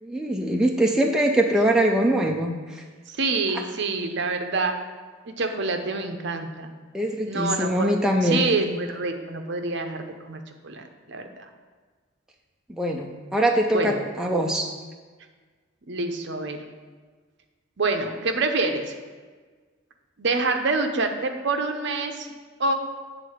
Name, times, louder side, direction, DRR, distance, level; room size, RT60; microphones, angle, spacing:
voice 1, 0.0-2.8 6.9-8.4 12.7-14.7, right 1 dB, 5° right, 0 dB, 0.4 m, -23 dB
voice 2, 3.1-4.8 5.3-6.7 7.3-11.4 13.7-14.0 15.9-16.6 17.8-18.9 20.2-22.3 22.6-22.7, right 3 dB, 55° right, 5 dB, 0.7 m, -27 dB
8.3 x 3.8 x 6.4 m, 1.5 s
head